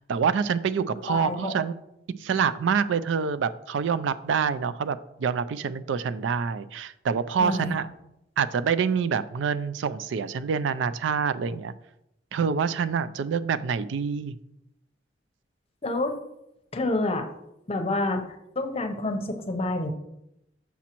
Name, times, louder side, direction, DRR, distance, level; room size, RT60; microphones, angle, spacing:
voice 1, 0.0-1.7 2.2-7.9 8.4-11.7 12.3-14.4, right 6 dB, 85° right, 14 dB, 0.3 m, -26 dB
voice 2, 1.1-1.5 7.4-7.7 15.8-16.2 16.7-17.3 17.7-18.2 18.6-19.9, left 2 dB, 35° left, 5 dB, 0.7 m, -28 dB
7.0 x 6.1 x 2.9 m, 0.83 s
head